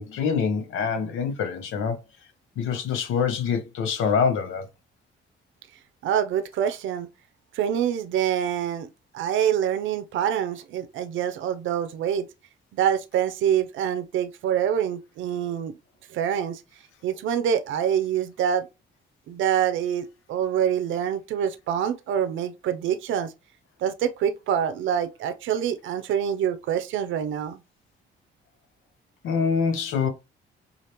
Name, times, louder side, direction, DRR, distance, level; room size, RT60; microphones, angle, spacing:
voice 1, 0.0-2.0 2.6-4.7 29.2-30.1, left 6 dB, 85° left, 1.0 m, -25 dB
voice 2, 6.0-7.1 7.5-8.9 9.1-12.3 12.7-15.7 16.1-16.6 17.0-18.7 19.3-23.3 23.8-27.6, right 9 dB, 75° right, 0.6 m, -25 dB
5.0 x 2.4 x 2.9 m
cardioid pair, 90°, 20 cm